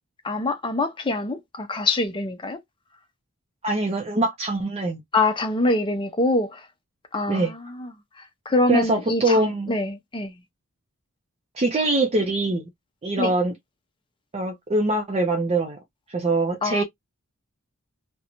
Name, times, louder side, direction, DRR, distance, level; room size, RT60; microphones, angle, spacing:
voice 1, 0.2-2.6 5.1-6.6 7.1-7.5 7.8-7.9 8.5-10.3 13.2-13.3 16.6-16.8, left 2 dB, 20° left, 0.5 m, -24 dB
voice 2, 3.6-5.0 7.3-7.5 8.7-9.7 11.5-12.7 13.0-13.5 14.3-15.8 16.1-16.8, right 2 dB, 30° right, 0.5 m, -23 dB
2.5 x 2.1 x 2.9 m
head